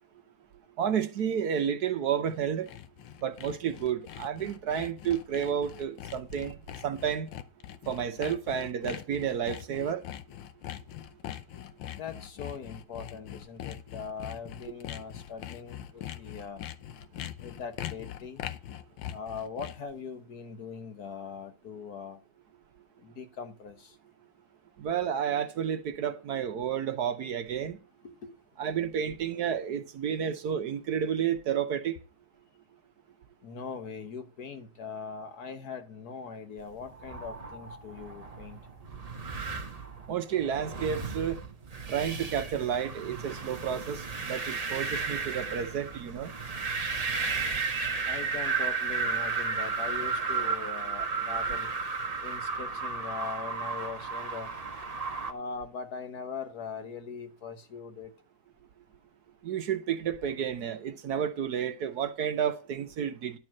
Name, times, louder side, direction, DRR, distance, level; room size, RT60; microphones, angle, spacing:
voice 1, 0.8-2.7 3.2-6.6 6.8-7.3 7.9-10.0 24.8-27.8 28.6-32.0 40.1-41.4 41.9-46.3 59.4-63.4, right 8 dB, 65° right, 1.2 m, -31 dB
Sawing, 2.1-19.9, left 11 dB, 85° left, 1.5 m, -42 dB
voice 2, 11.9-16.6 17.4-18.5 19.1-22.2 23.0-24.0 28.0-28.3 33.4-38.6 46.5-46.7 48.1-51.7 52.2-54.5 55.3-58.1, left 5 dB, 60° left, 1.5 m, -41 dB
sound 1, 36.8-55.3, right 4 dB, 30° right, 0.8 m, -34 dB
11.5 x 4.6 x 7.5 m
omnidirectional pair, 2.0 m